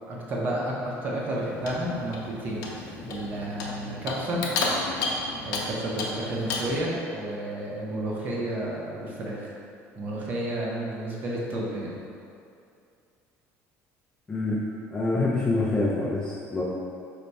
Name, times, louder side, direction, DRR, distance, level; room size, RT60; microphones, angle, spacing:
voice 1, 0.1-4.4 5.4-9.5 10.0-12.0, right 1 dB, 30° right, -3 dB, 0.6 m, -31 dB
Clock, 1.3-6.8, left 3 dB, 70° left, 0.6 m, -32 dB
voice 2, 14.3-14.6 14.9-16.6, left 2 dB, 10° left, -6 dB, 0.3 m, -26 dB
4.5 x 2.2 x 3.9 m, 2.5 s
cardioid pair, 180°, 6 cm